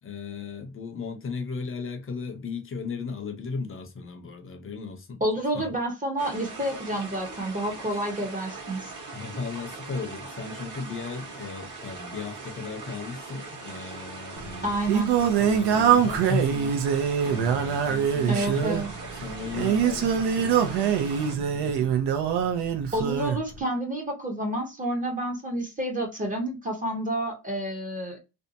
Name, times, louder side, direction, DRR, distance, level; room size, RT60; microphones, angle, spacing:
voice 1, 0.0-5.2 5.5-5.8 9.1-14.7 15.2-18.8 19.2-22.0, left 4 dB, 30° left, 0.6 m, -36 dB
voice 2, 5.2-8.9 14.6-15.1 18.3-18.9 22.9-28.2, right 1 dB, 20° right, 0.7 m, -29 dB
sound 1, 6.2-21.3, right 3 dB, 50° right, 1.1 m, -41 dB
Singing, 14.4-23.4, right 8 dB, 80° right, 0.7 m, -24 dB
2.7 x 2.2 x 2.6 m
cardioid pair, 120°, 40 cm